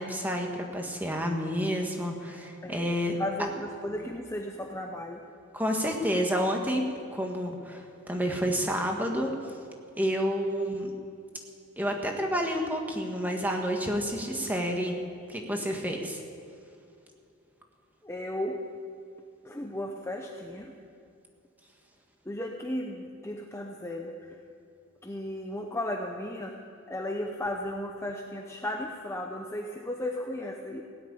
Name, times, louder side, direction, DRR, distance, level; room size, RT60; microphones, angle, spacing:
voice 1, 0.0-3.1 5.5-6.8 7.1-9.3 10.0-10.9 11.8-15.0 15.3-16.2, equal, 10° right, 2 dB, 1.5 m, -29 dB
voice 2, 2.6-5.2 18.0-18.7 19.4-20.8 22.2-24.4 25.0-30.8, left 1 dB, 10° left, 1 dB, 0.8 m, -35 dB
17.0 x 8.0 x 9.8 m, 2.5 s
head